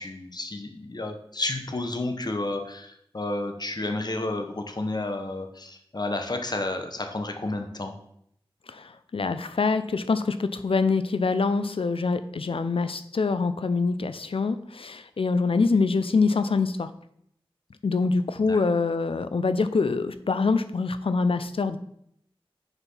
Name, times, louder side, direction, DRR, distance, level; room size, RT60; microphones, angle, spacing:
voice 1, 0.0-8.0 18.4-18.6, left 2 dB, 45° left, 5 dB, 1.0 m, -31 dB
voice 2, 8.7-16.9 17.8-21.8, left 4 dB, 70° left, 11 dB, 0.5 m, -25 dB
6.9 x 4.5 x 5.5 m, 0.72 s
wide cardioid pair, 70°, 10 cm